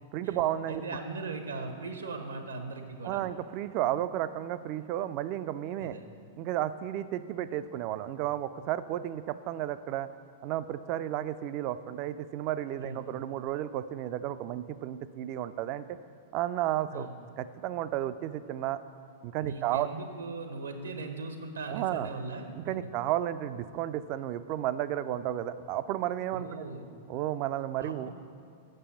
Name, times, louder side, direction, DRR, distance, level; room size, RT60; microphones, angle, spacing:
voice 1, 0.1-0.8 3.0-6.0 6.4-10.1 10.4-15.9 16.3-17.1 17.4-18.8 19.2-19.9 21.7-22.1 22.7-26.7 27.1-28.1, right 12 dB, 40° right, 13 dB, 0.3 m, -32 dB
voice 2, 0.7-3.2 5.8-6.1 12.8-13.1 16.9-17.1 19.4-22.7 26.3-26.9 27.8-28.1, right 3 dB, 75° right, 5 dB, 0.9 m, -39 dB
6.8 x 5.4 x 6.8 m, 2.4 s
figure-of-eight pair, 95°, 0 cm